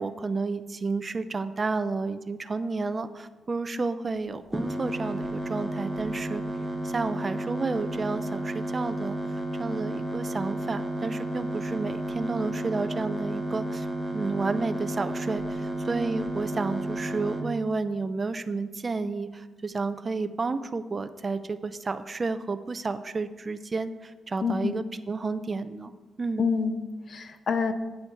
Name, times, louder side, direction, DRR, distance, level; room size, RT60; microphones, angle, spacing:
voice 1, 0.0-6.4 6.8-9.2 9.6-13.9 14.1-25.9 26.2-26.5, right 3 dB, 25° right, 11 dB, 0.4 m, -31 dB
sound 1, 4.5-17.4, right 1 dB, ahead, 1.0 m, -32 dB
voice 2, 24.4-24.8 26.4-27.7, left 5 dB, 45° left, 10 dB, 0.5 m, -27 dB
8.7 x 8.4 x 4.6 m, 1.3 s
wide cardioid pair, 150°, 0 cm